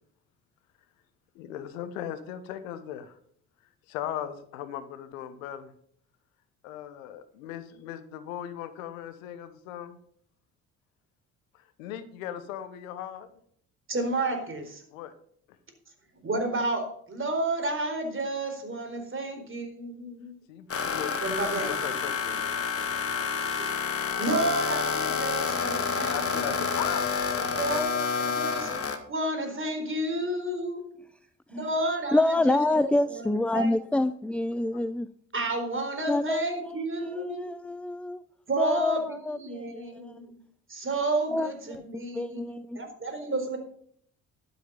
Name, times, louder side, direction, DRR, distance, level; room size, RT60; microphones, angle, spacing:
voice 1, 1.3-3.2 3.9-5.7 6.6-10.0 11.5-13.3 14.9-15.1 20.5-22.5 25.9-27.6, left 10 dB, 80° left, 13 dB, 1.1 m, -38 dB
voice 2, 13.9-14.8 16.2-20.3 21.2-21.7 24.2-26.6 27.6-28.7 29.1-30.8 31.5-32.6 33.1-33.7 35.3-37.4 38.5-40.3 40.7-42.4 42.7-43.6, right 2 dB, 30° right, 5 dB, 4.3 m, -31 dB
sound 1, 20.7-29.0, left 5 dB, 35° left, 2.0 m, -29 dB
voice 3, 32.1-35.1 36.1-38.2 38.6-40.2 41.3-41.8 42.1-42.8, left 2 dB, 5° left, 14 dB, 0.5 m, -27 dB
12.5 x 8.5 x 5.4 m, 0.62 s
hypercardioid pair, 50°, 39 cm